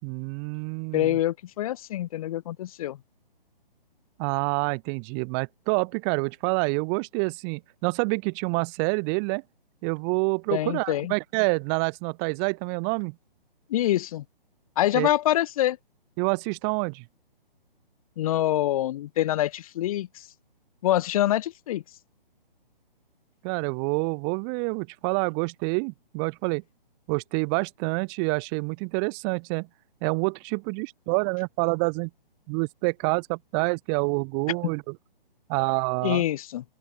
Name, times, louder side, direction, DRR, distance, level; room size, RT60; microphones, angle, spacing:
voice 1, 0.0-1.2 4.2-9.4 9.8-13.2 14.9-15.1 16.2-17.0 23.4-26.6 27.1-29.7 30.0-32.1 32.5-34.9 35.5-36.2, right 40 dB or more, 25° right, 5.5 m, -27 dB
voice 2, 0.9-3.0 10.5-11.1 13.7-14.2 14.8-15.8 18.2-20.3 20.8-21.8 36.0-36.6, left 13 dB, 35° left, 4.8 m, -25 dB
open air
figure-of-eight pair, 135°, 29 cm